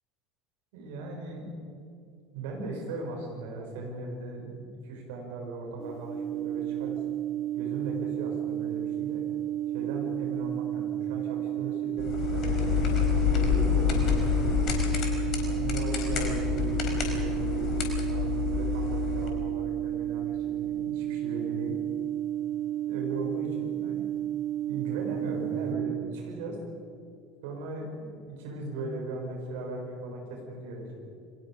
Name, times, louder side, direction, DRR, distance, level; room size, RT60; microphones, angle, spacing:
voice 1, 0.7-1.6 2.3-7.0 7.5-9.2 9.7-14.6 15.3-17.7 18.1-21.8 22.9-24.1 24.7-26.6 27.4-31.0, right 2 dB, 60° right, 0 dB, 6.5 m, -38 dB
sound 1, 5.8-25.7, right 12 dB, 10° right, 4.0 m, -32 dB
sound 2, 12.0-19.3, left 8 dB, 45° left, 4.4 m, -28 dB
30.0 x 23.0 x 5.2 m, 2.4 s
figure-of-eight pair, 70°, 0 cm